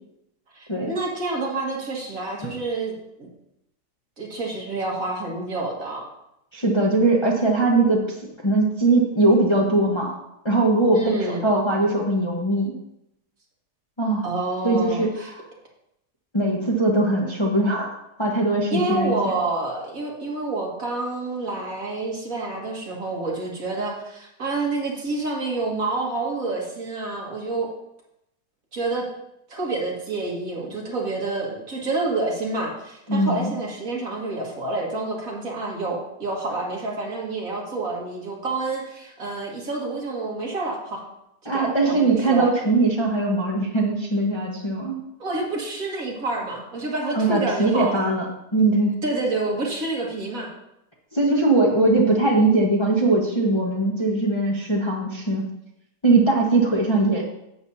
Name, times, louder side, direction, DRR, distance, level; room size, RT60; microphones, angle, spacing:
voice 1, 0.5-3.3 4.2-6.0 10.9-11.4 14.2-15.3 18.7-27.7 28.7-29.0 29.5-41.0 41.4-42.5 45.2-48.0 49.0-50.5, right 3 dB, 55° right, -2 dB, 2.2 m, -28 dB
voice 2, 6.5-8.2 8.4-10.1 10.4-12.7 14.0-14.3 14.6-15.4 16.3-19.4 33.1-33.5 41.4-44.9 47.1-48.3 48.5-48.9 51.1-55.5 56.0-57.2, right 2 dB, 20° left, -2 dB, 1.0 m, -21 dB
11.5 x 8.0 x 2.8 m, 0.82 s
omnidirectional pair, 1.8 m